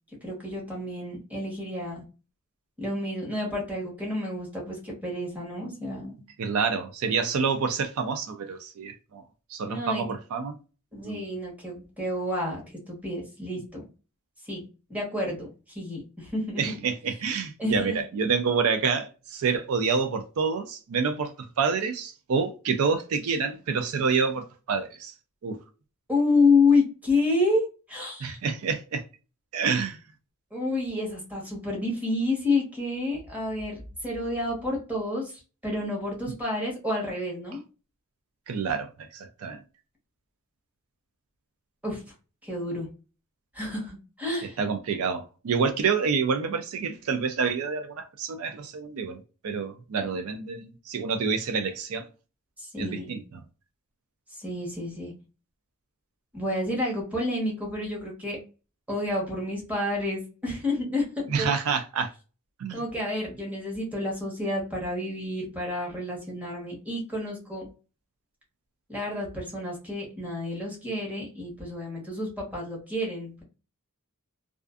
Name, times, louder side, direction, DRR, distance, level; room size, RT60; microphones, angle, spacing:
voice 1, 0.2-2.0 2.8-6.2 9.7-10.1 10.9-12.6 12.9-13.8 14.4-14.6 14.9-16.7 17.6-18.0 26.1-28.4 30.5-37.6 41.8-42.0 42.4-42.9 43.5-44.6 52.6-53.2 54.4-55.1 56.3-58.4 58.9-61.5 62.7-67.7 68.9-73.4, left 2 dB, 5° right, 1.1 m, -29 dB
voice 2, 6.4-10.6 11.0-11.3 16.6-25.1 25.4-25.6 28.2-29.0 29.5-30.0 38.5-39.6 44.4-52.1 52.8-53.4 61.3-62.1 62.6-62.8, right 5 dB, 75° right, 0.4 m, -28 dB
2.4 x 2.4 x 2.3 m
head